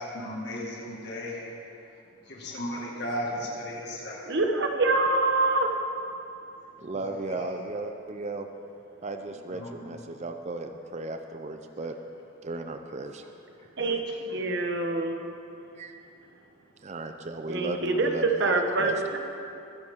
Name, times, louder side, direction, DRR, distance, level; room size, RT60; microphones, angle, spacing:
voice 1, 0.0-1.4 2.3-4.2 6.9-7.5 9.5-9.7, equal, 50° left, -3 dB, 2.0 m, -35 dB
voice 2, 4.3-5.8 13.8-15.2 17.5-19.2, right 2 dB, 55° right, 4 dB, 1.2 m, -25 dB
voice 3, 6.8-8.5 9.0-12.0 12.4-13.2 15.8-16.0 16.8-19.0, right 2 dB, 30° right, 7 dB, 0.5 m, -35 dB
21.0 x 9.5 x 3.7 m, 2.7 s
head